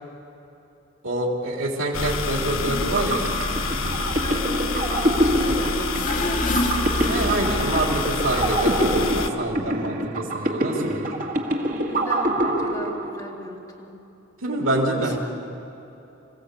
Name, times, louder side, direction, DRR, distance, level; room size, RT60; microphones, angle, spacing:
voice 1, 1.0-3.3 5.5-5.6 7.1-11.1 14.4-15.2, right 1 dB, 80° right, -1 dB, 3.6 m, -26 dB
sound 1, 1.9-9.3, left 3 dB, 75° left, 1.3 m, -27 dB
sound 2, 2.7-13.5, right 1 dB, 45° right, 1.9 m, -26 dB
voice 2, 4.2-7.0 11.8-13.9 14.9-15.2, equal, 15° left, -2 dB, 2.8 m, -35 dB
sound 3, 5.9-7.9, left 2 dB, 40° left, 2.2 m, -29 dB
26.0 x 15.5 x 8.4 m, 2.9 s
head